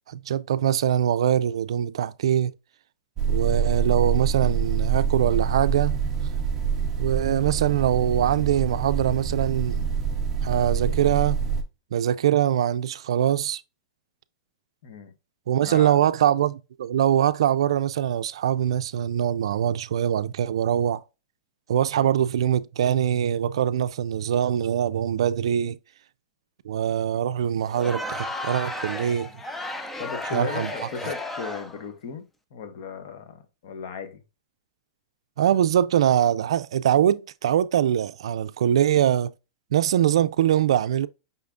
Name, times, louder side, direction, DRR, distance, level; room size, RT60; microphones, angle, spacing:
voice 1, 0.1-2.5 3.3-6.0 7.0-9.8 10.4-11.4 11.9-13.6 15.5-21.0 21.7-25.8 26.7-29.3 30.3-30.7 35.4-39.3 39.7-41.1, right 10 dB, 75° right, 0.4 m, -23 dB
sound 1, 3.2-11.6, right 6 dB, 15° right, 0.7 m, -26 dB
voice 2, 14.8-15.1 15.5-16.2 22.0-22.1 30.0-32.2 32.5-34.2, left 6 dB, 45° left, 1.0 m, -36 dB
Crowd, 27.7-31.9, left 1 dB, 5° left, 0.4 m, -33 dB
5.6 x 3.5 x 2.4 m
supercardioid pair, 170°, 3 cm